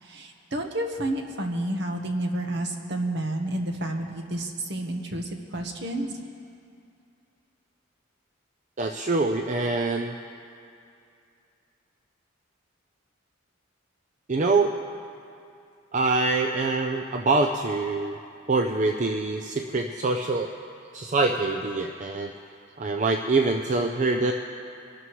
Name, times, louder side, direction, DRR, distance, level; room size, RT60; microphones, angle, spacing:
voice 1, 0.0-6.2, right 1 dB, 55° right, 3 dB, 1.2 m, -30 dB
voice 2, 8.8-10.2 14.3-14.8 15.9-18.2 18.5-20.5 20.9-22.3 22.8-24.3, right 3 dB, 35° right, 4 dB, 0.5 m, -24 dB
23.0 x 12.5 x 3.2 m, 2.5 s
head